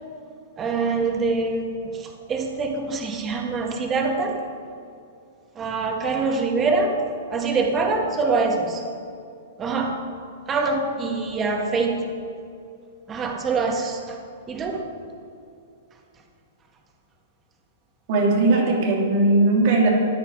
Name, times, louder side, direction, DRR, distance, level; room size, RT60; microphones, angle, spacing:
voice 1, 0.6-4.4 5.6-7.0 7.3-8.8 9.6-10.0 10.5-12.0 13.1-14.2 14.5-14.9, right 4 dB, 20° right, 2 dB, 1.7 m, -24 dB
voice 2, 18.1-19.9, right 2 dB, 50° right, -1 dB, 3.2 m, -18 dB
14.0 x 9.8 x 4.7 m, 2.5 s
hypercardioid pair, 130°, 0 cm